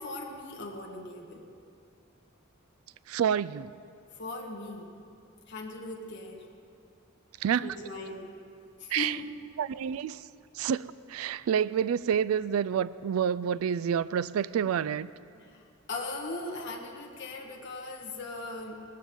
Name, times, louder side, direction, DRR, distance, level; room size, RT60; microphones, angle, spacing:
voice 1, 0.0-1.5 4.1-4.9 5.5-6.4 7.6-8.3 8.8-9.3 15.3-15.6 15.9-18.8, left 2 dB, 55° left, 0 dB, 1.7 m, -39 dB
voice 2, 3.1-3.7 7.4-7.7 8.9-9.2 9.6-10.2 10.5-15.1, right 8 dB, 85° right, 16 dB, 0.3 m, -28 dB
19.0 x 14.0 x 3.8 m, 2.3 s
head